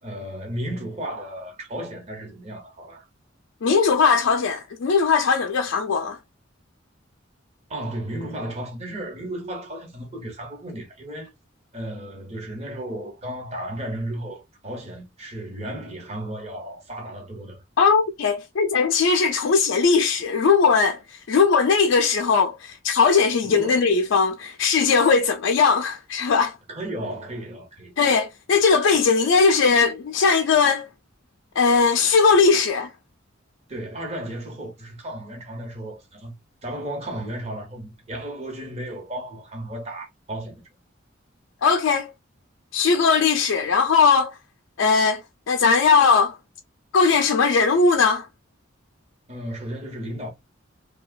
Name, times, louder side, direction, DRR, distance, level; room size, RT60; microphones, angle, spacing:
voice 1, 0.0-3.1 7.7-11.3 11.7-17.6 23.4-24.0 26.7-27.9 33.7-36.3 36.6-40.6 49.3-50.3, right 1 dB, 35° right, 1.0 m, -34 dB
voice 2, 3.6-6.2 17.8-26.5 28.0-30.9 31.6-32.9 41.6-42.1 42.7-44.4 44.8-45.2 45.5-46.4 46.9-48.3, left 5 dB, 80° left, 0.4 m, -19 dB
2.8 x 2.2 x 2.3 m
head